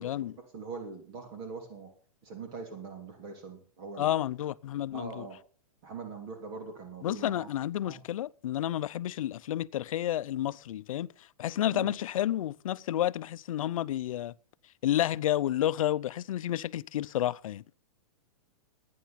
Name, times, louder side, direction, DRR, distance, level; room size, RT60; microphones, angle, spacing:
voice 1, 0.0-0.4 4.0-5.3 7.0-11.1 11.4-14.3 14.8-17.6, left 12 dB, 75° left, 0.6 m, -30 dB
voice 2, 0.5-1.9 2.2-4.2 4.9-5.4 5.8-7.5 7.8-8.0 11.7-12.0, right 4 dB, 45° right, 3.3 m, -42 dB
13.5 x 9.5 x 5.9 m
hypercardioid pair, 150°, 18 cm